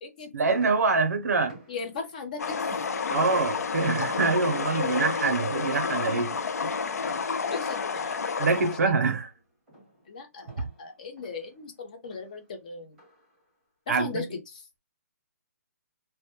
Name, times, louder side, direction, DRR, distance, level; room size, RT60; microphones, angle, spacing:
voice 1, 0.3-1.6 3.1-6.4 6.6-6.7 8.4-9.3 13.9-14.2, right 4 dB, 80° right, 0.5 m, -25 dB
sound 1, 0.5-2.1 2.7-3.4 3.8-9.4 9.7-11.7 12.0-12.4 12.9-13.4, right 1 dB, 5° right, 0.9 m, -50 dB
voice 2, 1.7-2.7 7.5-8.1 10.1-12.9 13.9-14.3 14.5-14.6, left 4 dB, 30° left, 0.5 m, -38 dB
sound 2, 2.4-8.8, left 5 dB, 85° left, 0.4 m, -30 dB
2.1 x 2.1 x 2.8 m
hypercardioid pair, 170°, 8 cm